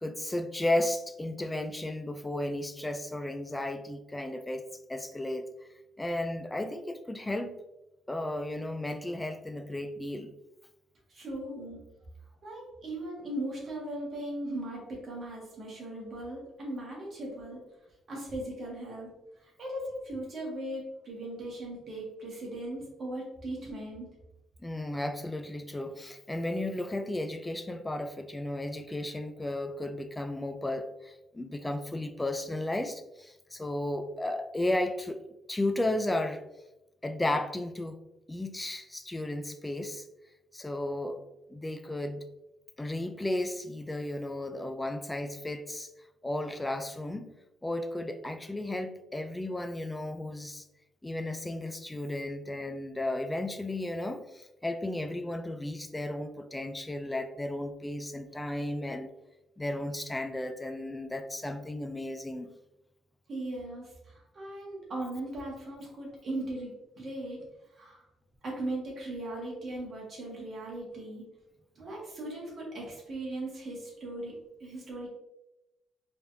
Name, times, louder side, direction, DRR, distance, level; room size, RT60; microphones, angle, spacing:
voice 1, 0.0-5.5 6.0-7.6 8.1-10.3 24.6-35.2 35.5-36.4 37.0-38.0 38.3-40.0 40.5-41.2 41.5-42.2 42.8-45.9 46.2-47.3 47.6-50.6 51.0-59.1 59.6-62.5, left 1 dB, 10° left, 8 dB, 0.3 m, -34 dB
voice 2, 11.1-11.8 12.4-17.6 18.1-19.1 19.4-24.1 63.3-67.4 67.7-68.0 68.4-71.2 71.7-74.3 74.6-75.1, right 1 dB, 40° right, -3 dB, 1.5 m, -38 dB
4.5 x 3.2 x 2.6 m, 0.95 s
cardioid pair, 150°, 0 cm